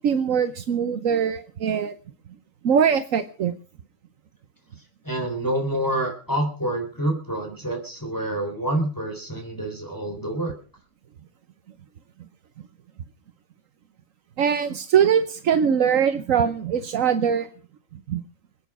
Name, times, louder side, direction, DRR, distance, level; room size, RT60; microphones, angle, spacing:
voice 1, 0.0-1.9 2.6-3.5 14.4-17.5 18.1-18.2, right 7 dB, 75° right, 10 dB, 1.3 m, -22 dB
voice 2, 5.0-10.5, right 1 dB, 15° left, 1 dB, 3.7 m, -27 dB
22.5 x 9.3 x 6.1 m, 0.40 s
omnidirectional pair, 1.4 m